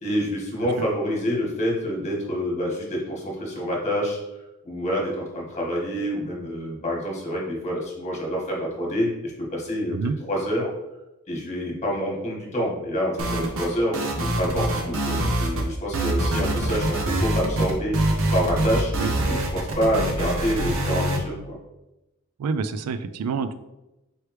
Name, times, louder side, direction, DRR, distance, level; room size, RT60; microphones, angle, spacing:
voice 1, 0.0-4.2 4.6-9.9 10.2-10.7 11.3-18.0 18.3-21.6, equal, 30° left, -3 dB, 1.4 m, -27 dB
sound 1, 13.2-13.7 13.9-15.7 15.9-21.2, right 1 dB, 65° right, 0.8 m, -24 dB
voice 2, 22.4-23.5, right 5 dB, 80° right, 11 dB, 0.3 m, -27 dB
4.6 x 3.3 x 3.1 m, 0.96 s
head